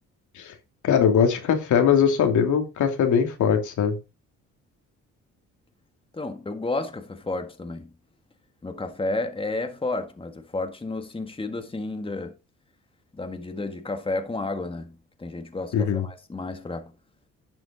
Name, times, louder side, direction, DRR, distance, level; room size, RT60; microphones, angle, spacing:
voice 1, 0.8-3.9 15.7-16.0, left 7 dB, 75° left, 3.0 m, -21 dB
voice 2, 6.1-7.9 8.6-12.3 13.1-16.9, left 2 dB, 15° left, 1.9 m, -31 dB
12.0 x 7.7 x 3.9 m
cardioid pair, 90°, 30 cm